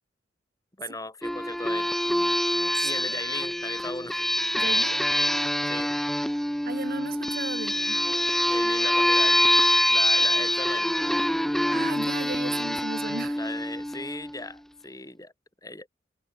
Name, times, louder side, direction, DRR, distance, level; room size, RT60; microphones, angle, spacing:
voice 1, 0.8-1.9 2.8-4.2 5.7-5.9 8.5-9.4 9.9-10.9 13.4-15.3 15.6-15.9, left 2 dB, 20° left, 3.7 m, -37 dB
sound 1, 1.2-14.4, equal, ahead, 0.8 m, -25 dB
voice 2, 2.7-3.4 4.6-5.0 6.6-8.0 11.7-13.4, right 3 dB, 55° right, 2.1 m, -36 dB
head